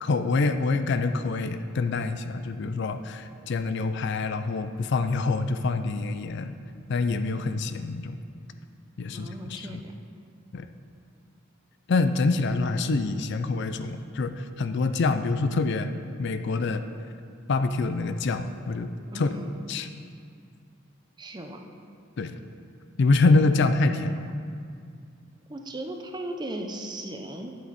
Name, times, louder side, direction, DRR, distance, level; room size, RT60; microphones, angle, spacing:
voice 1, 0.0-6.5 6.9-8.2 9.0-9.8 10.5-10.7 11.9-15.9 16.2-16.8 17.5-18.9 19.1-19.3 19.7-19.9 22.2-22.3 23.0-24.3, left 3 dB, 55° left, 9 dB, 0.4 m, -26 dB
voice 2, 9.1-9.9 19.1-19.5 21.2-21.6 25.5-27.6, right 1 dB, 20° right, 4 dB, 0.6 m, -37 dB
12.0 x 7.7 x 4.1 m, 2.3 s
head